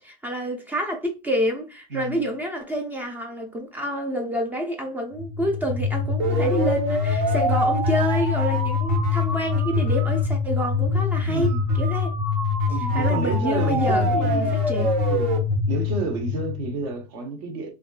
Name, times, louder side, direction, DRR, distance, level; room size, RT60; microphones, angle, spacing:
voice 1, 0.0-12.1 12.8-14.9, equal, 10° right, 0.4 m, -28 dB
voice 2, 1.9-2.3 11.2-11.7 12.7-14.6 15.1-15.3 15.7-17.7, right 3 dB, 55° right, 1.0 m, -30 dB
sound 1, 5.2-17.0, left 3 dB, 70° right, 1.3 m, -23 dB
3.4 x 2.5 x 2.3 m
supercardioid pair, 160°, 19 cm